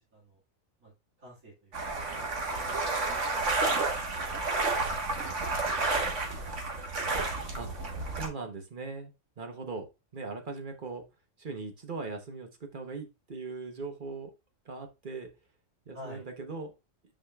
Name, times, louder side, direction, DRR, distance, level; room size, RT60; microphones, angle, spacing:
voice 1, 0.8-1.9 2.2-3.8 4.9-5.2 6.1-6.6 15.9-16.3, equal, 85° right, -4 dB, 2.6 m, -52 dB
sound 1, 1.7-8.3, right 3 dB, 65° right, 1.7 m, -31 dB
voice 2, 8.2-9.8 10.1-11.0 11.4-14.3 14.6-15.3 15.9-16.7, right 4 dB, 40° right, 5 dB, 1.2 m, -39 dB
8.7 x 5.0 x 2.3 m, 0.25 s
omnidirectional pair, 1.4 m